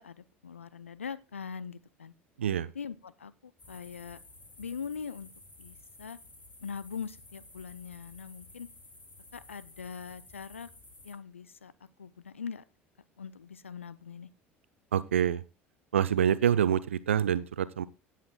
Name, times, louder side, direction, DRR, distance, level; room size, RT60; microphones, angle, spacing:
voice 1, 0.0-2.1 2.7-4.2 4.6-5.3 5.6-6.2 6.6-8.7 9.3-10.7 11.0-11.7 12.0-12.6 13.2-14.3, left 6 dB, 80° left, 17 dB, 0.6 m, -42 dB
voice 2, 2.4-2.7 14.9-15.4 15.9-17.9, right 9 dB, 75° right, 17 dB, 0.6 m, -26 dB
sound 1, 3.6-11.1, left 2 dB, 20° left, 3.0 m, -53 dB
16.5 x 7.5 x 2.3 m, 0.28 s
figure-of-eight pair, 65°, 7 cm